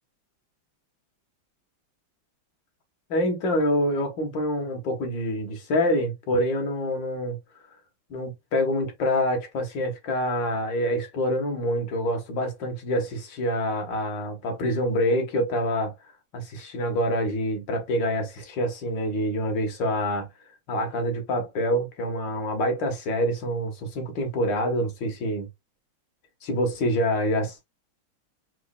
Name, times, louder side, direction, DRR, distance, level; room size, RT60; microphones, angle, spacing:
voice 1, 3.1-7.4 8.1-15.9 16.3-20.3 20.7-25.5 26.4-27.6, equal, 60° left, 1.9 m, -26 dB
4.7 x 4.2 x 2.3 m
omnidirectional pair, 2.3 m